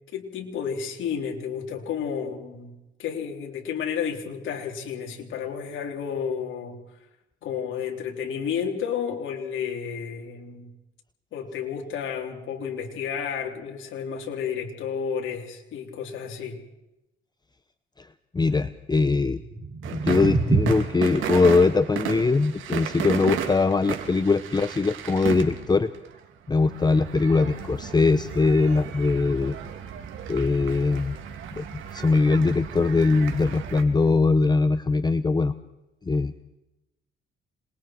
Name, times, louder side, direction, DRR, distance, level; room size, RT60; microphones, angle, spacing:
voice 1, 0.1-2.7 3.0-6.8 7.4-10.7 11.3-16.6, left 7 dB, 80° left, 1 dB, 3.7 m, -31 dB
voice 2, 18.3-19.4 19.9-25.9 26.5-29.6 30.3-31.2 31.5-35.5 36.0-36.3, left 3 dB, 20° left, 12 dB, 0.8 m, -21 dB
sound 1, 19.4-25.4, right 3 dB, 40° right, 6.4 m, -30 dB
sound 2, 19.8-33.8, right 8 dB, 85° right, 3.0 m, -34 dB
27.0 x 21.5 x 4.6 m, 0.94 s
cardioid pair, 90°, 20 cm